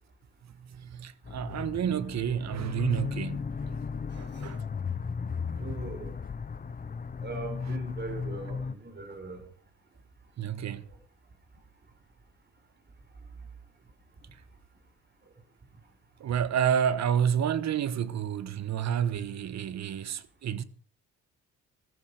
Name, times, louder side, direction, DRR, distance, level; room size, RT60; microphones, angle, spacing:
voice 1, 0.8-3.7 4.1-4.6 10.4-10.8 16.2-20.6, right 8 dB, 65° right, 1.4 m, -29 dB
sound 1, 1.3-8.7, left 5 dB, 30° left, 0.9 m, -35 dB
voice 2, 4.1-4.4 5.6-6.2 7.2-9.5, right 3 dB, 35° right, 5.0 m, -40 dB
15.0 x 15.0 x 5.1 m
cardioid pair, 90°, 30 cm